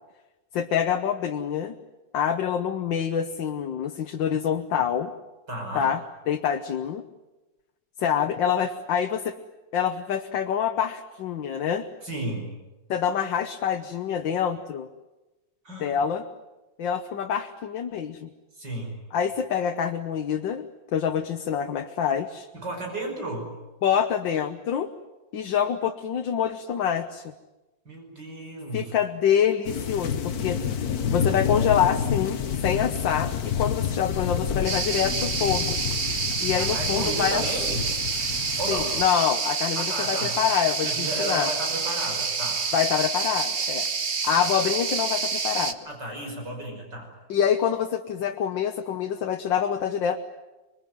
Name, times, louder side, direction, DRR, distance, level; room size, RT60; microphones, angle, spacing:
voice 1, 0.5-1.8 2.1-5.1 5.8-6.0 6.3-7.0 8.0-9.4 9.7-11.9 12.9-14.9 15.8-16.2 16.8-18.3 19.1-20.7 20.9-22.5 23.8-24.9 25.3-27.3 28.7-30.6 31.1-35.8 36.4-37.4 38.7-41.5 42.7-43.9 44.2-45.8 47.3-50.2, left 8 dB, 80° left, 6 dB, 1.8 m, -26 dB
voice 2, 5.5-5.9 12.0-12.5 15.6-15.9 18.6-18.9 22.5-23.5 27.8-28.9 36.4-37.9 38.6-38.9 39.7-40.4 40.8-42.6 45.9-47.1, right 1 dB, 65° right, 1 dB, 6.2 m, -33 dB
sound 1, 29.6-39.0, left 7 dB, 55° left, 1.6 m, -29 dB
sound 2, 34.6-45.7, right 5 dB, 35° right, 1.1 m, -28 dB
25.5 x 23.0 x 9.3 m, 1.1 s
omnidirectional pair, 2.0 m